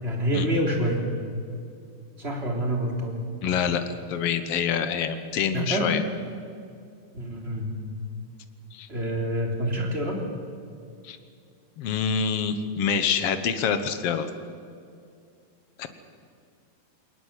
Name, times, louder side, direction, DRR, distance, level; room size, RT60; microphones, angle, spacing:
voice 1, 0.0-1.0 2.2-3.2 5.5-5.9 7.1-7.7 8.9-10.2, right 1 dB, 15° right, 1 dB, 3.3 m, -27 dB
voice 2, 3.4-6.0 8.7-8.9 11.0-11.2 11.8-14.3 15.8-15.9, left 7 dB, 65° left, 10 dB, 1.5 m, -26 dB
21.5 x 19.5 x 8.3 m, 2.4 s
omnidirectional pair, 4.2 m